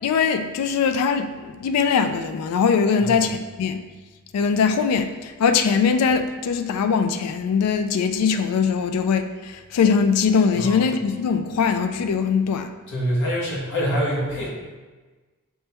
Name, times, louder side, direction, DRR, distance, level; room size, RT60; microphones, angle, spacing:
voice 1, 0.0-3.8 4.3-12.7, left 6 dB, 90° left, 8 dB, 0.3 m, -21 dB
voice 2, 10.5-10.9 12.9-14.5, equal, 55° left, -4 dB, 1.1 m, -25 dB
5.4 x 2.9 x 3.3 m, 1.3 s
head